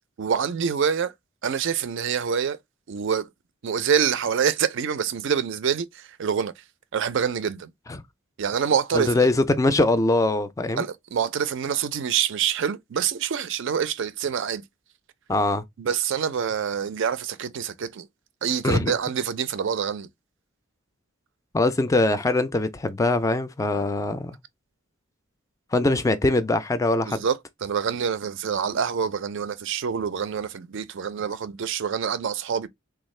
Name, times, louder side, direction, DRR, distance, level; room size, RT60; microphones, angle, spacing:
voice 1, 0.2-1.1 1.4-2.6 2.9-3.3 3.6-6.5 6.9-7.7 8.4-9.1 10.8-14.6 15.8-18.1 18.4-20.1 27.1-32.7, right 7 dB, 60° right, 0.4 m, -26 dB
voice 2, 8.9-10.8 15.3-15.6 18.6-18.9 21.5-24.4 25.7-27.2, left 2 dB, 15° left, 0.3 m, -22 dB
3.5 x 2.3 x 3.1 m
head